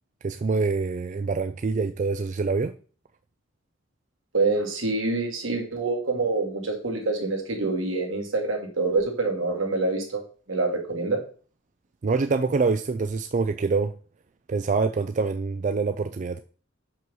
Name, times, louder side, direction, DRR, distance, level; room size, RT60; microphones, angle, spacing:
voice 1, 0.2-2.7 12.0-13.9 14.5-16.4, right 4 dB, 40° right, 0.4 m, -25 dB
voice 2, 4.3-10.2 10.5-11.2, right 3 dB, 75° right, 2.2 m, -26 dB
5.5 x 5.4 x 6.2 m
head